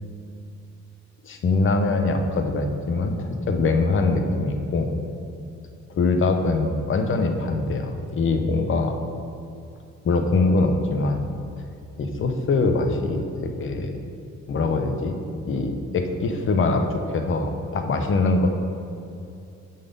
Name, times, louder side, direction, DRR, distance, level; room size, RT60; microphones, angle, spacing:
voice 1, 1.2-4.9 5.9-9.0 10.0-11.2 12.0-13.9 14.5-15.1 15.5-18.5, left 3 dB, 40° left, 5 dB, 0.8 m, -23 dB
7.4 x 4.1 x 5.3 m, 2.6 s
cardioid pair, 100°, 30 cm